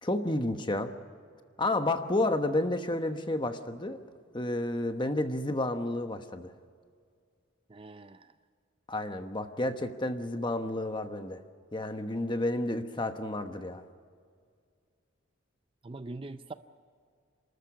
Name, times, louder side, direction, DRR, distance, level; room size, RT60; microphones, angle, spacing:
voice 1, 0.0-0.9 1.6-4.0 4.3-6.5 8.9-11.4 11.7-13.8, left 1 dB, 25° left, 8 dB, 1.1 m, -31 dB
voice 2, 7.7-8.3 15.8-16.5, right 2 dB, 25° right, 10 dB, 0.5 m, -42 dB
29.0 x 13.5 x 8.3 m, 2.1 s
head